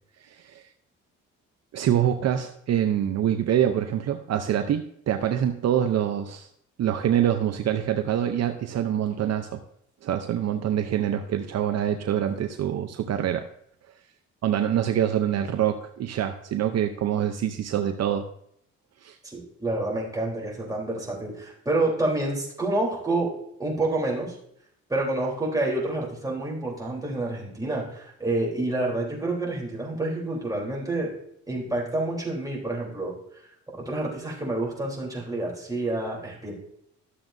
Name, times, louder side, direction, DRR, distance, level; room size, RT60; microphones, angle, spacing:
voice 1, 0.2-0.6 1.7-6.5 6.8-9.6 10.0-13.5 14.4-18.3 19.0-19.2, right 10 dB, 60° right, 7 dB, 0.7 m, -25 dB
voice 2, 19.2-23.3 23.6-24.4 24.9-31.1 31.5-33.1 33.7-36.5, right 2 dB, 10° right, -4 dB, 3.5 m, -28 dB
13.0 x 7.1 x 2.6 m, 0.70 s
cardioid pair, 90°, 30 cm